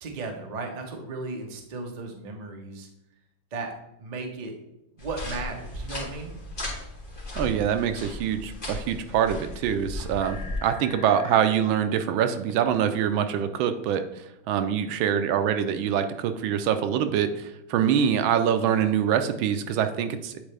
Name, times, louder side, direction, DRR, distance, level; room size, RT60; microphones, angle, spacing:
voice 1, 0.0-2.9 3.5-3.7 4.0-4.5 4.9-6.3, right 3 dB, 50° right, 3 dB, 0.5 m, -35 dB
sound 1, 5.0-10.6, left 2 dB, 25° left, 1.9 m, -36 dB
voice 2, 7.4-20.4, right 9 dB, 90° right, 9 dB, 1.4 m, -25 dB
sound 2, 10.2-11.5 12.5-12.6, left 5 dB, 70° left, 1.1 m, -43 dB
8.9 x 4.0 x 3.3 m, 0.86 s
omnidirectional pair, 2.1 m